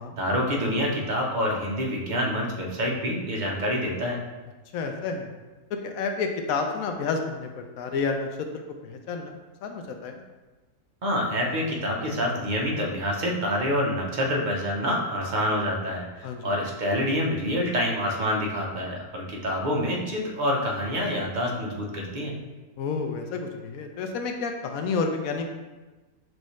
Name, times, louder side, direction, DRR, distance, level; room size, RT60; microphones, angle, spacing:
voice 1, 0.2-4.2 11.0-22.4, equal, 40° right, -1 dB, 0.7 m, -27 dB
voice 2, 4.7-5.3 5.7-9.3 9.6-10.1 16.2-16.6 22.8-25.5, left 4 dB, 75° left, 4 dB, 1.0 m, -30 dB
6.1 x 2.7 x 3.1 m, 1.2 s
omnidirectional pair, 1.5 m